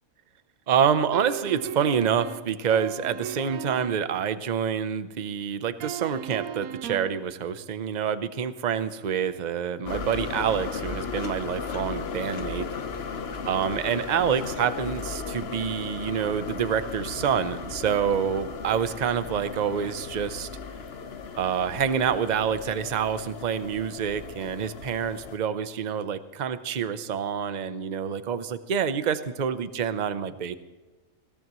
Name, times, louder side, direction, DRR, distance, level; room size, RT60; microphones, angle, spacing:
voice 1, 0.7-12.7 13.5-20.5 21.4-30.5, right 7 dB, 40° right, 12 dB, 0.7 m, -27 dB
sound 1, 1.1-4.1 5.8-7.2, right 10 dB, 75° right, 1.1 m, -37 dB
sound 2, 9.8-25.4, left 5 dB, 50° left, 1.1 m, -36 dB
21.5 x 17.5 x 3.1 m, 1.2 s
omnidirectional pair, 1.5 m